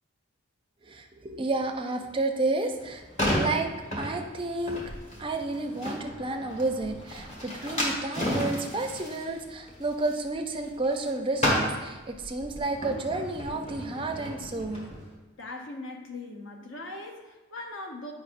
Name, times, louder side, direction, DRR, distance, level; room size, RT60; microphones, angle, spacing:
voice 1, 0.9-3.0 3.3-3.7 4.0-4.8 5.2-14.9, right 2 dB, 25° right, 4 dB, 0.4 m, -31 dB
sound 1, 2.7-11.1 11.3-15.0, equal, 30° left, 1.4 m, -33 dB
voice 2, 15.4-18.1, left 2 dB, 60° left, 3 dB, 0.8 m, -40 dB
8.3 x 5.3 x 2.5 m, 1.2 s
head